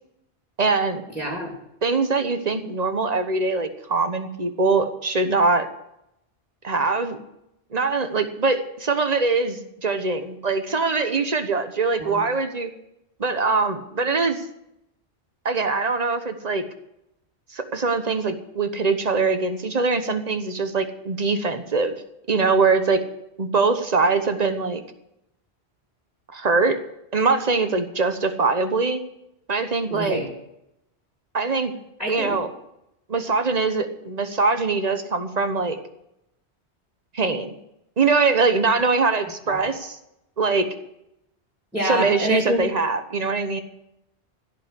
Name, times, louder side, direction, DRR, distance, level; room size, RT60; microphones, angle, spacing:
voice 1, 0.6-1.0 1.8-5.7 6.6-7.2 7.7-12.7 13.2-14.4 15.4-16.6 17.5-22.0 22.3-23.0 23.4-24.8 26.3-26.8 27.1-29.0 29.5-30.2 31.3-31.7 32.1-32.5 33.1-35.8 37.1-37.5 38.0-40.0 40.4-40.7 41.8-43.6, right 4 dB, 40° right, 8 dB, 1.2 m, -22 dB
voice 2, 1.1-1.5 12.0-12.3 29.9-30.3 32.0-32.4 39.5-39.6 41.7-42.6, equal, ahead, -2 dB, 2.8 m, -26 dB
16.0 x 5.6 x 9.8 m, 0.83 s
omnidirectional pair, 1.1 m